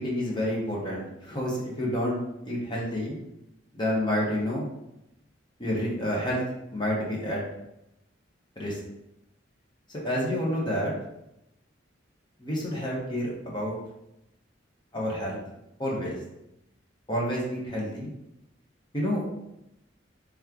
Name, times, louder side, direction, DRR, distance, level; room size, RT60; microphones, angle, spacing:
voice 1, 0.0-2.2 2.4-3.2 3.7-4.7 5.6-6.4 6.7-7.4 8.6-8.8 10.0-10.9 12.4-13.7 14.9-15.4 15.8-16.1 17.1-18.1 18.9-19.2, equal, 25° left, -4 dB, 0.9 m, -29 dB
3.5 x 3.1 x 3.6 m, 0.85 s
head